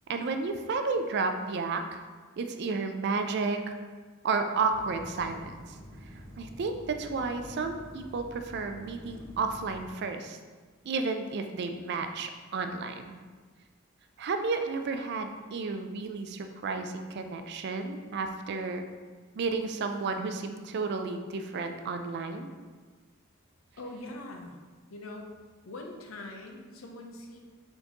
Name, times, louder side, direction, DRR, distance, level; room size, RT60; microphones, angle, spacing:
voice 1, 0.1-2.0 2.4-3.7 4.2-5.6 6.4-10.4 10.8-13.2 14.2-18.8 19.4-22.5, right 4 dB, 55° right, 6 dB, 0.4 m, -32 dB
sound 1, 4.7-9.9, equal, 10° left, 1.1 m, -48 dB
voice 2, 23.8-24.6 24.9-25.3 25.6-27.4, left 2 dB, 80° left, 2 dB, 0.6 m, -42 dB
4.2 x 3.9 x 2.9 m, 1.4 s
head